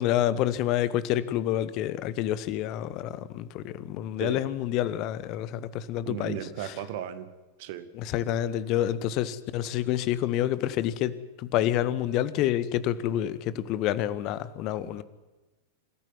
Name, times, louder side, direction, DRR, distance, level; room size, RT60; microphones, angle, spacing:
voice 1, 0.0-6.3 8.0-11.1 11.5-15.0, left 12 dB, 40° left, 1.3 m, -28 dB
voice 2, 6.1-7.3 7.6-7.9 14.8-15.0, right 11 dB, 50° right, 2.0 m, -36 dB
26.0 x 14.0 x 10.0 m
figure-of-eight pair, 90°, 0 cm